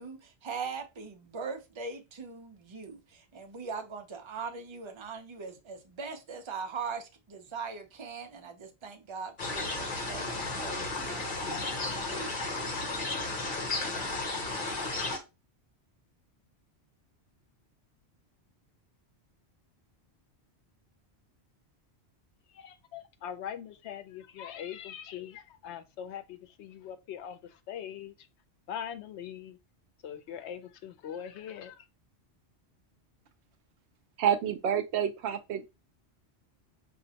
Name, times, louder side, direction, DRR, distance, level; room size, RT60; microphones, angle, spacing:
voice 1, 0.0-11.5 12.1-12.8, right 5 dB, 35° right, 0.6 m, -41 dB
sound 1, 9.4-15.2, left 2 dB, 50° left, 1.1 m, -33 dB
voice 2, 22.5-28.3 28.7-29.6 30.0-31.9, left 9 dB, 85° left, 0.9 m, -42 dB
voice 3, 34.2-35.7, right 9 dB, 80° right, 0.9 m, -28 dB
5.1 x 2.5 x 2.8 m
omnidirectional pair, 1.1 m